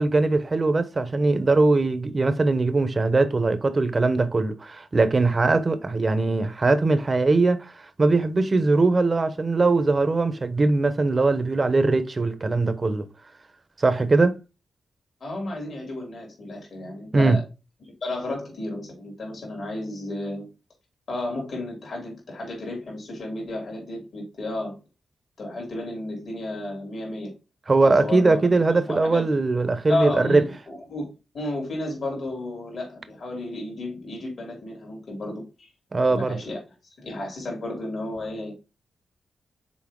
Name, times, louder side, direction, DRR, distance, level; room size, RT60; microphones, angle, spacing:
voice 1, 0.0-13.1 13.8-14.4 17.1-17.4 27.7-30.4 35.9-36.4, right 3 dB, 40° right, 0.9 m, -21 dB
voice 2, 15.2-17.4 18.0-20.5 21.1-24.8 25.4-27.3 27.8-29.2 29.9-35.7 36.1-36.6 37.0-38.5, left 2 dB, 65° left, 3.1 m, -32 dB
6.3 x 4.1 x 3.7 m
cardioid pair, 55°, 0 cm